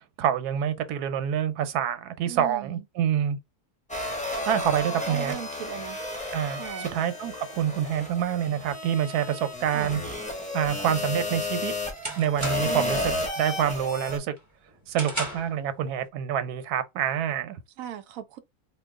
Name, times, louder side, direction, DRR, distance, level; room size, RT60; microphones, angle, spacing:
voice 1, 0.2-3.4 4.5-5.4 6.3-10.0 10.5-11.7 12.2-13.0 13.4-14.3 14.9-17.6, right 9 dB, 90° right, 1.1 m, -27 dB
voice 2, 2.3-2.8 5.1-6.0 6.5-7.0 9.7-10.0 12.6-13.1 17.8-18.4, right 11 dB, 70° right, 0.9 m, -38 dB
sound 1, 3.9-14.2, left 2 dB, 10° left, 0.5 m, -33 dB
sound 2, 11.9-12.9 13.3-13.7 14.1-15.6, right 1 dB, 15° right, 0.9 m, -35 dB
2.9 x 2.2 x 3.5 m
omnidirectional pair, 1.6 m